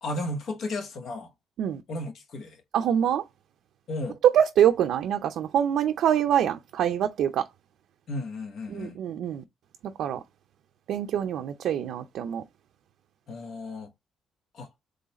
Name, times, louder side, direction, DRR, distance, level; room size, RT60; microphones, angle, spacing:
voice 1, 0.0-1.3 1.9-2.6 3.9-4.2 8.1-9.0 13.3-13.9 14.5-14.7, left 2 dB, 70° left, 1.1 m, -34 dB
voice 2, 2.7-3.2 4.3-7.5 8.7-9.4 10.0-10.2 10.9-12.4, right 9 dB, 75° right, 0.4 m, -25 dB
3.8 x 3.4 x 4.1 m
cardioid pair, 90°, 0 cm